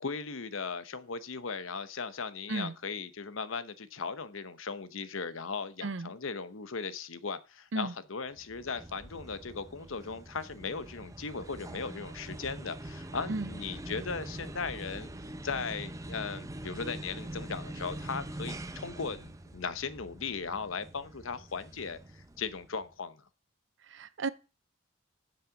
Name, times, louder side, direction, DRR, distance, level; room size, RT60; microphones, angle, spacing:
voice 1, 0.0-15.1 15.4-23.2, left 5 dB, 75° left, 0.9 m, -38 dB
sound 1, 8.4-22.9, right 1 dB, 15° right, 0.7 m, -44 dB
voice 2, 23.9-24.3, right 3 dB, 65° right, 0.7 m, -33 dB
7.7 x 7.4 x 7.1 m
head